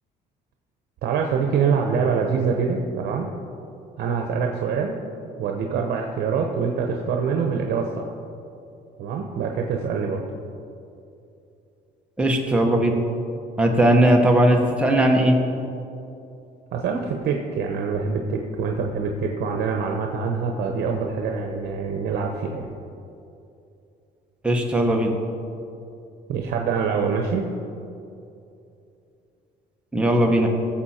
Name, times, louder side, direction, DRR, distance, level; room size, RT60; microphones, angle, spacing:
voice 1, 1.0-3.3 4.0-4.9 5.4-8.1 9.0-10.2 16.7-22.7 26.3-27.5, right 5 dB, 70° right, 2 dB, 1.0 m, -25 dB
voice 2, 12.2-13.0 13.6-15.4 24.4-25.1 29.9-30.5, right 1 dB, 5° right, 0 dB, 1.3 m, -18 dB
16.0 x 7.3 x 4.4 m, 2.7 s
cardioid pair, 110°, 17 cm